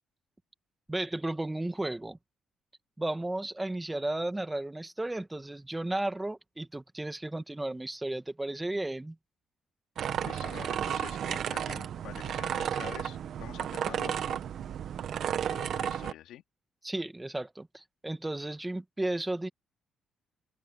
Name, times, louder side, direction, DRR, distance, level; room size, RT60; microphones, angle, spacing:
voice 1, 0.9-2.2 3.0-9.2 16.8-19.5, right 1 dB, 10° right, 1.8 m, -34 dB
sound 1, 10.0-16.1, right 9 dB, 65° right, 1.5 m, -33 dB
voice 2, 10.2-14.4 15.4-16.4, left 12 dB, 85° left, 2.8 m, -46 dB
open air
cardioid pair, 90°, 0 cm